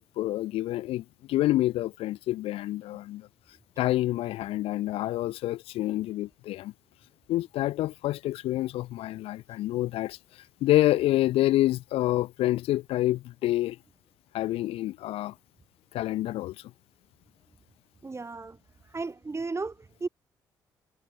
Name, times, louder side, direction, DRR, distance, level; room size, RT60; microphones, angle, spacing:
voice 1, 0.0-3.3 3.8-6.7 7.3-13.8 14.3-15.3 15.9-16.5, left 15 dB, 70° left, 3.3 m, -27 dB
voice 2, 18.0-18.6 18.9-20.1, right 3 dB, 25° right, 5.2 m, -34 dB
hypercardioid pair, 50°, 10 cm